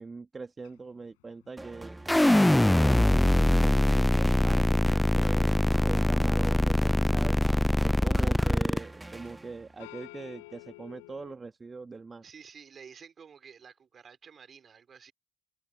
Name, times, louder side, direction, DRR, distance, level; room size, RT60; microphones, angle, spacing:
voice 1, 0.0-2.0 2.5-5.5 5.8-7.4 7.8-12.2, right 4 dB, 35° right, 1.4 m, -42 dB
sound 1, 0.6-4.7 5.0-5.9 6.4-6.9 7.2-9.5 9.8-11.4, left 24 dB, 85° left, 4.3 m, -52 dB
sound 2, 1.6-9.9, right 2 dB, 15° right, 2.2 m, -45 dB
sound 3, 2.1-8.8, left 1 dB, 10° left, 0.4 m, -23 dB
voice 2, 12.2-15.1, right 6 dB, 50° right, 4.4 m, -51 dB
hypercardioid pair, 50°, 0 cm